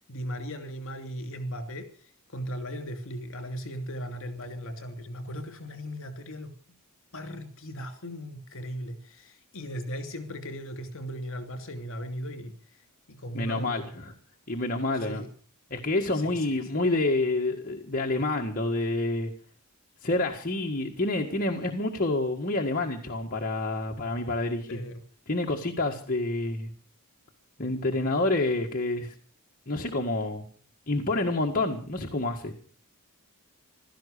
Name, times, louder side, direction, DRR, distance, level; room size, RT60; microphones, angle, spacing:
voice 1, 0.1-1.9 2.3-6.6 7.1-12.5 13.1-13.9 15.0-15.3 16.1-16.6 24.7-25.0, equal, 60° left, 7 dB, 3.0 m, -37 dB
voice 2, 13.3-14.1 14.5-15.2 15.7-19.3 20.0-24.8 25.3-26.7 27.6-29.1 29.7-30.5 30.9-32.5, left 2 dB, 40° left, 0 dB, 1.8 m, -28 dB
16.5 x 13.0 x 6.7 m, 0.43 s
head